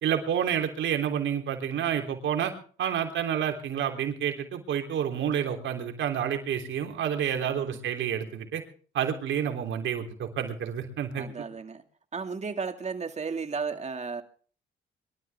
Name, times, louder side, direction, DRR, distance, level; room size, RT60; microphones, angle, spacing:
voice 1, 0.0-2.5 2.8-8.6 8.9-11.3, right 9 dB, 75° right, 3.4 m, -29 dB
voice 2, 7.3-7.7 11.1-11.8 12.1-14.2, right 5 dB, 35° right, 2.2 m, -34 dB
23.0 x 13.0 x 3.6 m
cardioid pair, 90°, 20 cm